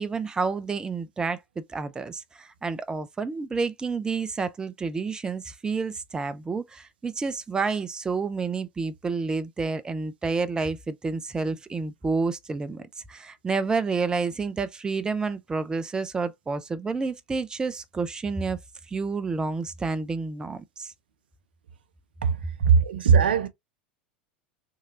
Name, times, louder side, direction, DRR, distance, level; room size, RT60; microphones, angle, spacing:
voice 1, 0.0-18.6 18.9-20.9, right 4 dB, 15° right, 0.4 m, -29 dB
voice 2, 22.2-23.5, right 6 dB, 70° right, 0.5 m, -20 dB
3.1 x 2.7 x 2.5 m
figure-of-eight pair, 80°, 5 cm